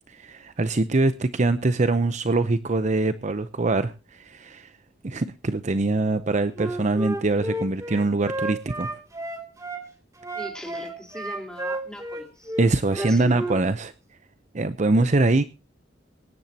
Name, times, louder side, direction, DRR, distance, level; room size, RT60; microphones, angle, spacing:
voice 1, 0.1-4.7 5.0-9.0 12.6-13.9 14.5-15.4, right 2 dB, 40° right, 0.7 m, -23 dB
Wind instrument woodwind instrument, 6.6-9.8 10.2-13.6, right 1 dB, 15° right, 2.6 m, -32 dB
voice 2, 10.3-12.5 12.9-13.5, equal, 5° left, 3.9 m, -38 dB
22.5 x 10.5 x 2.8 m
head